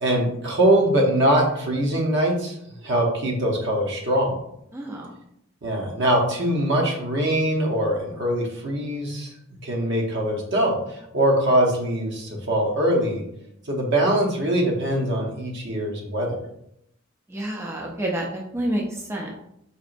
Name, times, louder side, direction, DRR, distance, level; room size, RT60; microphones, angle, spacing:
voice 1, 0.0-2.6 2.8-4.4 5.6-9.3 9.6-13.2 13.7-16.3, right 1 dB, 60° right, 0 dB, 0.8 m, -22 dB
voice 2, 4.7-5.1 17.3-19.3, right 1 dB, 15° right, -2 dB, 0.4 m, -29 dB
4.3 x 3.0 x 2.5 m, 0.76 s
head